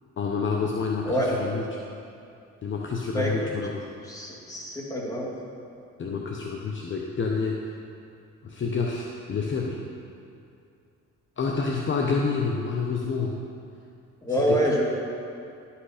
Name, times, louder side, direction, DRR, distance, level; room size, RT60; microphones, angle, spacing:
voice 1, 0.2-1.8 2.6-3.8 6.0-7.7 8.4-9.8 11.4-13.4 14.3-14.6, left 4 dB, 40° left, 0 dB, 0.8 m, -28 dB
voice 2, 3.1-3.5 4.1-5.3 14.2-14.8, equal, 10° left, -3 dB, 2.0 m, -26 dB
11.5 x 5.8 x 4.9 m, 2.5 s
cardioid pair, 90°, 30 cm